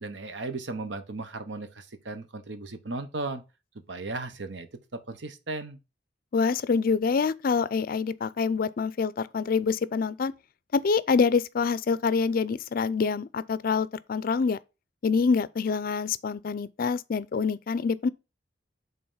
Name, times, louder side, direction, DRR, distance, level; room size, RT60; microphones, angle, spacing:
voice 1, 0.0-3.4 3.9-5.8, right 3 dB, 80° right, 1.0 m, -36 dB
voice 2, 6.3-10.3 10.7-14.6 15.0-18.1, left 5 dB, 55° left, 0.4 m, -26 dB
5.4 x 3.9 x 5.6 m
head